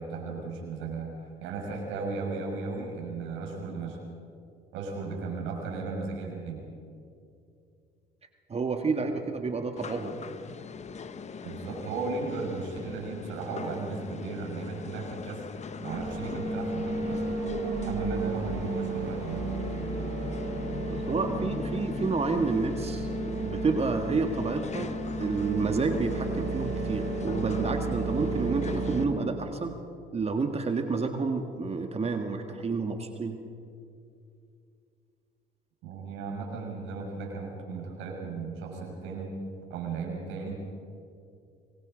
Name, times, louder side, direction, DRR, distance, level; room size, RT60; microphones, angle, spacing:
voice 1, 0.0-4.0 4.7-6.6 11.4-17.2 17.8-19.4 35.8-39.4 39.7-40.6, right 4 dB, 85° right, 0 dB, 6.1 m, -36 dB
voice 2, 8.5-10.2 20.9-23.1 23.4-24.9 25.2-29.8 30.1-33.4, right 4 dB, 30° right, 5 dB, 1.8 m, -29 dB
sound 1, 9.8-29.0, left 5 dB, 35° left, 1.1 m, -40 dB
sound 2, 15.8-29.1, right 3 dB, 60° right, 6.5 m, -33 dB
25.0 x 21.5 x 5.2 m, 2.5 s
supercardioid pair, 90°, 19 cm